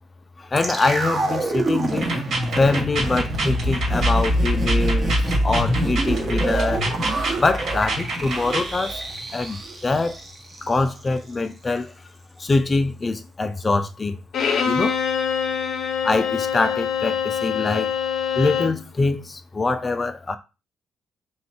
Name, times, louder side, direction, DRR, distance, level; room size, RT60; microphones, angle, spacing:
voice 1, 0.4-2.2 2.6-6.8 7.2-9.0 9.3-10.2 10.6-11.9 12.4-14.2 14.6-15.0 16.0-17.9 18.3-20.4, left 3 dB, 30° left, 0.5 m, -24 dB
sound 1, 0.6-10.7 11.0-11.1, right 1 dB, 40° right, 1.2 m, -25 dB
sound 2, 1.9-8.7, right 3 dB, 65° right, 1.9 m, -29 dB
Bowed string instrument, 14.3-18.8, left 7 dB, 65° left, 0.7 m, -24 dB
3.2 x 2.7 x 4.4 m
cardioid pair, 90°, 0 cm